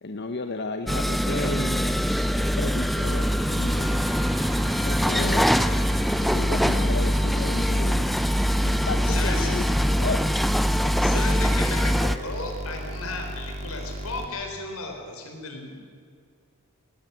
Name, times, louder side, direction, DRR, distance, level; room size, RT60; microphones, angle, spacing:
voice 1, 0.0-2.1 2.3-4.1 4.8-5.5 6.2-8.2 8.6-9.6 10.0-10.3 10.8-11.2, left 3 dB, 50° left, 7 dB, 0.8 m, -33 dB
sound 1, 0.9-12.2, equal, ahead, 0.5 m, -23 dB
sound 2, 2.8-14.3, equal, 30° right, 2.1 m, -35 dB
Gong, 3.2-7.8, right 2 dB, 60° right, 6.1 m, -47 dB
voice 2, 9.0-9.5 11.0-15.7, left 3 dB, 80° left, 3 dB, 4.2 m, -34 dB
20.0 x 16.5 x 8.2 m, 2.2 s
head